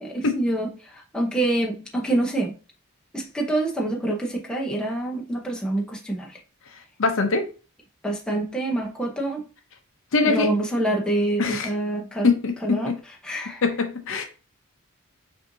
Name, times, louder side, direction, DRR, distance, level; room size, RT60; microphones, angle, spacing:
voice 1, 0.0-0.7 1.1-2.5 3.1-6.3 8.0-9.4 10.2-12.3 12.6-12.9 13.2-13.6, right 1 dB, 5° left, -2 dB, 0.7 m, -26 dB
voice 2, 7.0-7.4 10.1-10.5 11.4-11.7 12.2-13.0 13.6-14.2, left 4 dB, 60° left, 6 dB, 0.6 m, -22 dB
5.5 x 2.6 x 2.6 m, 0.34 s
head